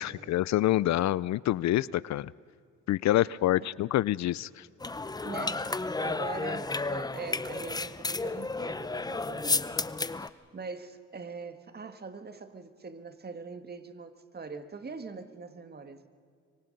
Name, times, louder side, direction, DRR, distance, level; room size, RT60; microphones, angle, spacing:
voice 1, 0.0-2.3 2.9-4.7, left 14 dB, 65° left, 22 dB, 0.5 m, -27 dB
sound 1, 4.8-10.3, left 3 dB, 15° left, 0.7 m, -32 dB
voice 2, 5.2-9.8 10.1-16.1, right 4 dB, 30° right, 9 dB, 1.7 m, -42 dB
25.5 x 24.0 x 5.3 m, 2.2 s
cardioid pair, 90°, 30 cm